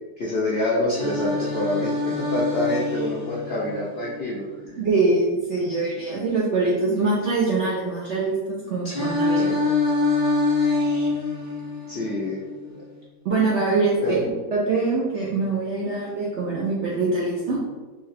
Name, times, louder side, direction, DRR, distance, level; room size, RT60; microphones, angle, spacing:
voice 1, 0.2-4.4 11.9-12.4 14.0-14.4, left 2 dB, 90° left, -5 dB, 0.5 m, -26 dB
Singing, 0.9-4.9 8.9-12.9, left 3 dB, 40° left, 0.7 m, -25 dB
voice 2, 4.8-9.6 13.2-14.2 14.5-17.6, right 3 dB, 70° right, -5 dB, 0.6 m, -23 dB
3.4 x 2.8 x 3.2 m, 1.3 s
omnidirectional pair, 1.9 m